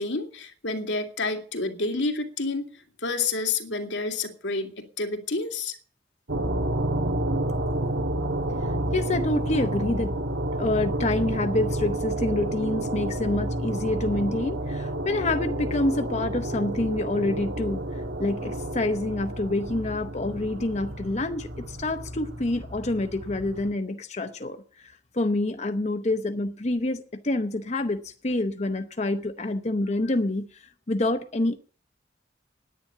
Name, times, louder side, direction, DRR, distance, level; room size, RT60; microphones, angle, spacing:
voice 1, 0.0-2.7 3.0-5.8, left 3 dB, 85° left, 2.5 m, -29 dB
sound 1, 6.3-23.7, right 1 dB, 85° right, 1.6 m, -30 dB
voice 2, 8.6-10.1 10.6-31.6, left 2 dB, 40° left, 0.8 m, -27 dB
10.0 x 9.6 x 9.9 m
head